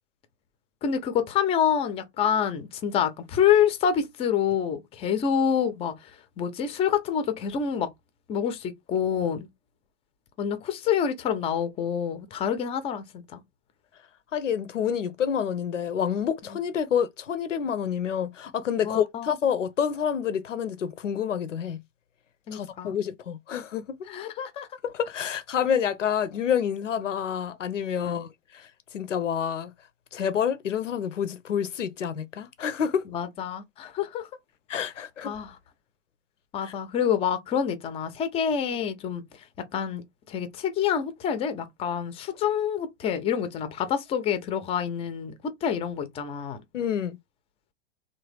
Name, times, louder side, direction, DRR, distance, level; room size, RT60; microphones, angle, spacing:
voice 1, 0.8-5.9 6.4-7.9 8.3-9.5 10.4-13.4 18.8-19.3 22.5-23.0 24.1-24.7 28.0-28.2 33.1-34.3 35.2-35.5 36.5-39.2 39.7-40.0 40.3-46.6, left 8 dB, 15° left, 0.4 m, -27 dB
voice 2, 14.3-21.8 22.5-23.8 24.8-28.3 28.5-28.7 28.9-29.7 30.1-33.0 34.7-35.3 36.6-36.7 46.7-47.2, left 8 dB, 85° left, 0.5 m, -28 dB
3.1 x 2.1 x 3.3 m
figure-of-eight pair, 105°, 36 cm